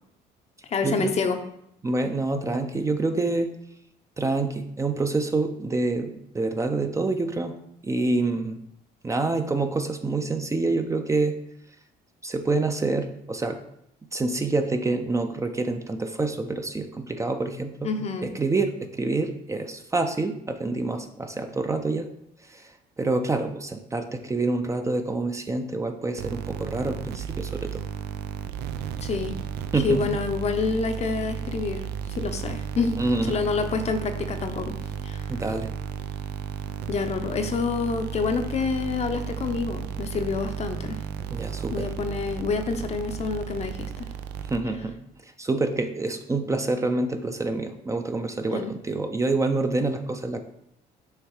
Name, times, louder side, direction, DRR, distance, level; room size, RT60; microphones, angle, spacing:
voice 1, 0.7-1.4 17.8-18.3 29.0-29.4 29.8-31.8 32.1-33.0 33.3-34.8 35.0-35.2 36.9-41.0 41.7-44.1 48.5-48.7, left 4 dB, 40° left, 7 dB, 0.7 m, -27 dB
voice 2, 1.8-3.5 4.2-7.5 7.8-8.6 9.0-11.4 12.2-13.6 14.1-17.9 18.2-22.1 22.5-27.8 29.7-30.1 33.0-33.4 35.3-35.7 41.3-41.9 44.5-44.9 45.4-50.4, right 3 dB, 20° right, 6 dB, 0.5 m, -27 dB
sound 1, 26.2-45.0, right 8 dB, 75° right, 0.4 m, -34 dB
6.5 x 3.5 x 4.7 m, 0.76 s
cardioid pair, 110°, 17 cm